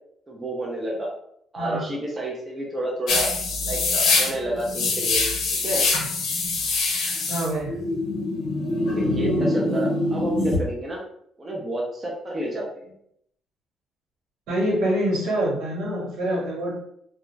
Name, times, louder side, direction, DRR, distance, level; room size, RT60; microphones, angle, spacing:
voice 1, 0.3-1.1 1.5-3.3 3.6-5.2 5.5-5.9 8.8-11.0 11.4-12.9 14.6-14.7, right 1 dB, 15° right, -2 dB, 0.4 m, -30 dB
voice 2, 1.6-1.9 7.3-7.8 14.5-16.7, right 1 dB, 75° right, -4 dB, 1.2 m, -25 dB
sound 1, 3.1-10.6, left 3 dB, 65° left, 0.6 m, -24 dB
2.4 x 2.1 x 3.1 m, 0.71 s
cardioid pair, 180°, 0 cm